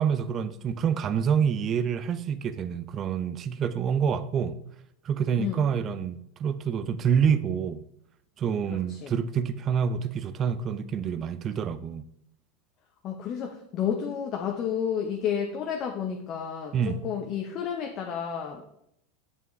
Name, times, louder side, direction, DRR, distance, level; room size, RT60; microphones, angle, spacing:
voice 1, 0.0-4.6 5.0-7.8 8.4-12.0 16.7-17.0, right 7 dB, 35° right, 0.6 m, -27 dB
voice 2, 8.7-9.1 13.0-16.7 17.0-18.6, left 8 dB, 40° left, 0.9 m, -31 dB
8.4 x 7.0 x 3.2 m
figure-of-eight pair, 85°, 0 cm